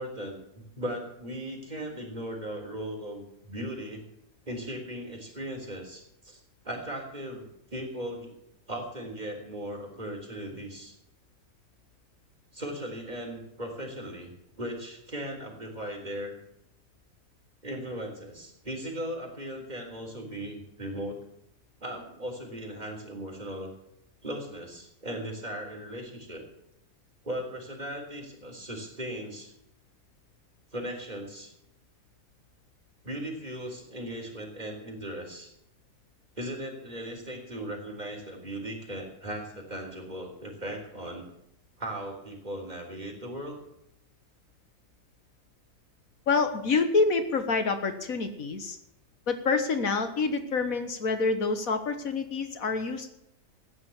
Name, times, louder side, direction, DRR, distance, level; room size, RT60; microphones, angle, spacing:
voice 1, 0.0-4.0 4.5-8.3 8.7-11.0 12.5-14.3 14.6-16.4 17.6-21.2 21.8-23.7 24.2-26.4 27.2-29.5 30.7-31.5 33.0-35.5 36.4-41.3 41.8-43.6 50.4-50.5, right 1 dB, 30° right, 0 dB, 3.7 m, -38 dB
voice 2, 46.3-48.8 49.3-53.1, left 4 dB, 70° left, 8 dB, 1.7 m, -27 dB
14.5 x 9.6 x 7.1 m, 0.78 s
omnidirectional pair, 1.5 m